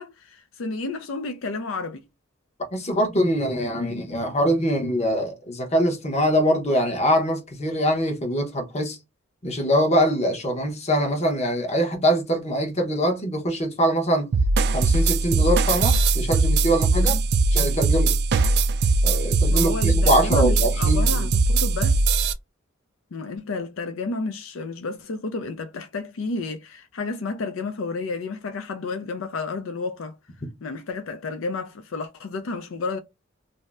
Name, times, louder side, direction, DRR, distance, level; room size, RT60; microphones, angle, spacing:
voice 1, 0.0-2.0 17.0-17.3 19.5-22.0 23.1-30.2 30.6-33.0, left 3 dB, 80° left, 0.4 m, -31 dB
voice 2, 2.7-9.0 9.4-14.3 14.7-17.2 17.5-18.2 19.0-21.3, equal, 35° left, 0.9 m, -23 dB
sound 1, 14.3-22.3, right 3 dB, 55° right, 0.3 m, -20 dB
2.7 x 2.0 x 3.3 m
head